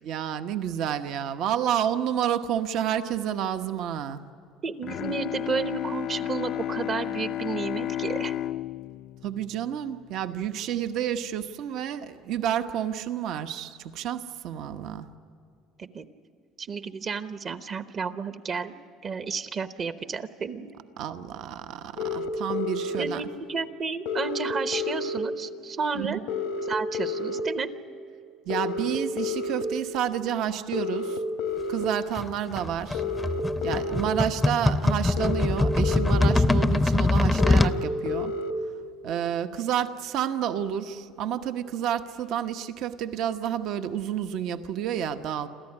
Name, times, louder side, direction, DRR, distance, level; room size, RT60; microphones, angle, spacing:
voice 1, 0.0-4.2 9.2-15.1 21.0-23.2 25.9-26.2 28.5-31.2 31.7-33.0 33.6-38.3 39.0-45.5, right 9 dB, 60° right, 9 dB, 1.0 m, -30 dB
voice 2, 4.6-8.3 15.8-16.1 16.6-18.8 19.0-20.7 23.0-26.2 26.7-27.8, right 5 dB, 35° right, 10 dB, 1.0 m, -32 dB
Bowed string instrument, 4.8-10.4, left 12 dB, 50° left, 0.5 m, -33 dB
sound 1, 22.0-23.0 24.1-25.2 26.3-27.4 28.5-29.6 30.7-31.9 32.9-34.1 35.2-36.3 37.4-38.5, left 4 dB, 90° left, 1.4 m, -30 dB
sound 2, 32.1-37.8, left 2 dB, 10° left, 0.7 m, -23 dB
27.5 x 14.0 x 9.9 m, 2.5 s
cardioid pair, 130°, 0 cm